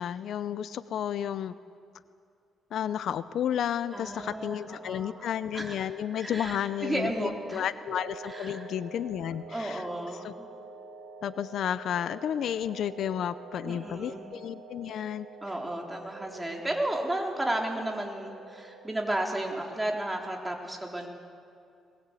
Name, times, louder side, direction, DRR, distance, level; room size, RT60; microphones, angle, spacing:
voice 1, 0.0-1.5 2.7-9.9 10.2-10.3 11.2-15.3, left 9 dB, 70° left, 14 dB, 0.7 m, -32 dB
sound 1, 3.8-19.0, right 3 dB, 85° right, 3.9 m, -47 dB
voice 2, 3.9-5.2 5.5-5.8 6.2-6.6 6.8-7.6 8.3-8.7 9.5-10.5 13.6-14.3 15.4-21.1, right 1 dB, 10° right, 0 dB, 4.0 m, -33 dB
21.5 x 21.0 x 8.4 m, 2.4 s
cardioid pair, 90°, 0 cm